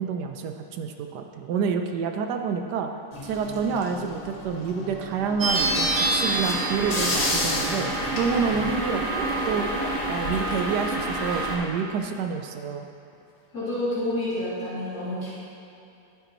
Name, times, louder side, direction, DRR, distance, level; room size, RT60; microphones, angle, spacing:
voice 1, 0.0-2.9 3.2-9.7 10.1-12.9, right 6 dB, 75° right, 5 dB, 1.2 m, -28 dB
sound 1, 3.1-8.8, left 2 dB, 30° left, 0.7 m, -32 dB
sound 2, 5.4-11.6, right 2 dB, 50° right, 1.7 m, -27 dB
sound 3, 8.8-10.1 11.1-11.2 11.9-12.0 12.5-12.6 13.1-13.2 13.8-13.9 14.3-14.4, left 4 dB, 80° left, 1.5 m, -39 dB
voice 2, 13.5-15.4, left 1 dB, 60° left, -12 dB, 3.1 m, -29 dB
11.0 x 9.2 x 3.0 m, 2.7 s
omnidirectional pair, 1.8 m